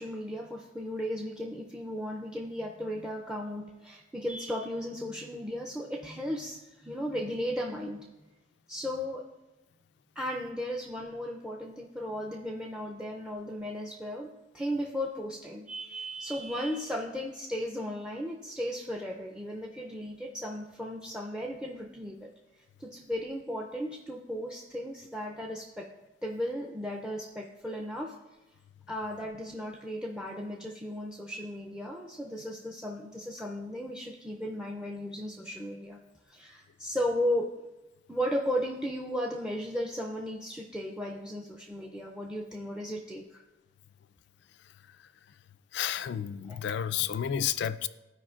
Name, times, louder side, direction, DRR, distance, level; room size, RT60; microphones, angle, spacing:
voice 1, 0.0-8.1 8.7-9.3 10.2-22.3 22.8-25.9 26.2-28.2 28.9-36.0 36.3-37.6 38.1-43.4 46.5-46.6, equal, 5° right, 0 dB, 0.4 m, -35 dB
voice 2, 45.7-47.9, left 9 dB, 60° left, 14 dB, 0.3 m, -31 dB
13.5 x 5.0 x 2.4 m, 1.0 s
head